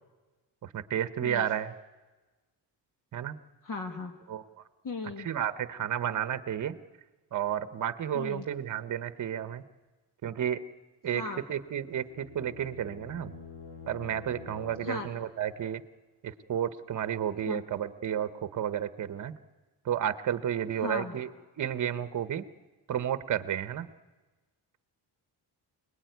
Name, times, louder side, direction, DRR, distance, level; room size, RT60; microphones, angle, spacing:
voice 1, 0.6-1.7 3.1-3.4 4.3-4.6 5.2-6.7 7.3-9.6 10.2-10.6 11.0-13.3 13.9-15.8 16.2-19.4 19.8-21.3 21.6-22.4 22.9-23.9, right 10 dB, 45° right, 13 dB, 1.1 m, -32 dB
voice 2, 3.6-4.1 4.8-5.3 8.1-8.4 11.1-11.4 14.8-15.1 17.5-17.6 20.8-21.1, left 3 dB, 50° left, 5 dB, 2.0 m, -36 dB
sound 1, 11.5-15.4, left 5 dB, 85° left, 4.5 m, -48 dB
28.5 x 20.0 x 9.3 m, 1.2 s
wide cardioid pair, 180°, 42 cm